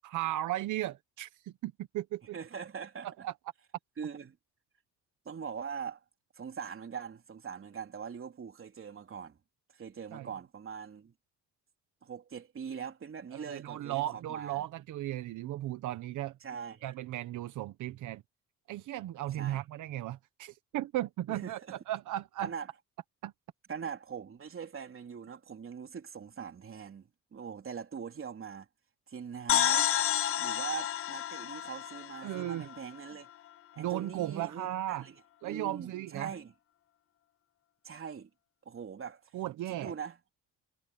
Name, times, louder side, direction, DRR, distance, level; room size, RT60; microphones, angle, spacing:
voice 1, 0.0-2.4 3.2-3.3 10.1-10.3 13.3-16.4 16.8-18.2 18.7-22.5 23.2-23.3 32.2-32.7 33.8-35.1 35.4-36.3 39.3-39.9, right 14 dB, 80° right, 1.1 m, -36 dB
voice 2, 2.3-3.1 4.0-4.4 5.3-6.0 6.3-9.4 9.7-11.1 12.0-14.6 16.4-16.9 19.4-19.6 21.3-21.8 22.4-22.7 23.7-28.7 29.1-29.9 30.4-33.3 33.7-35.2 35.4-36.5 37.8-38.3 38.7-39.3 39.7-40.2, right 7 dB, 45° right, 3.7 m, -42 dB
sound 1, 29.5-33.1, left 11 dB, 45° left, 0.6 m, -30 dB
cardioid pair, 90°, 30 cm